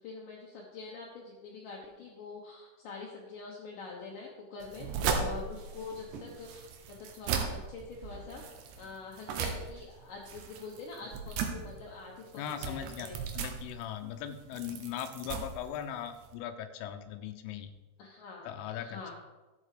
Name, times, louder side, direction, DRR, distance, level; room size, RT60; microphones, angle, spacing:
voice 1, 0.0-8.4 8.8-13.2 18.0-18.5 18.8-19.1, left 4 dB, 70° left, -2 dB, 2.0 m, -45 dB
sound 1, 4.6-16.3, right 5 dB, 70° right, 3.0 m, -37 dB
voice 2, 12.4-13.1 13.3-17.7 18.5-19.1, left 9 dB, 90° left, 7 dB, 3.4 m, -39 dB
12.5 x 8.8 x 5.0 m, 1.2 s
omnidirectional pair, 5.6 m